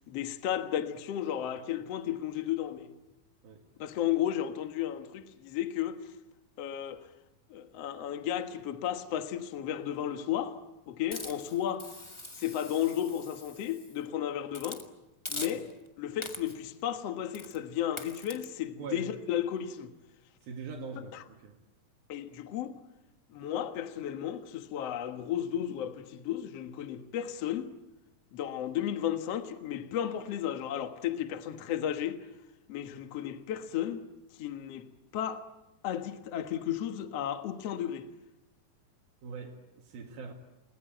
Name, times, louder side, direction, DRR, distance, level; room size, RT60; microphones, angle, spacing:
voice 1, 0.1-2.9 3.8-6.0 6.6-7.0 7.5-10.6 10.9-11.9 12.4-14.8 15.3-15.7 16.0-19.9 21.1-21.2 22.1-22.7 23.3-27.7 28.3-32.2 32.7-34.0 34.4-34.9 35.1-35.4 35.8-38.1, left 10 dB, 55° left, 2.0 m, -33 dB
Hiss, 11.1-14.0 14.5-14.8 15.2-15.9 16.2-16.7 17.3-17.6 18.0-18.4, left 2 dB, 25° left, 0.6 m, -43 dB
voice 2, 18.8-19.1 20.4-21.6 39.2-40.3, right 5 dB, 80° right, 4.2 m, -42 dB
29.0 x 21.0 x 9.0 m
omnidirectional pair, 4.1 m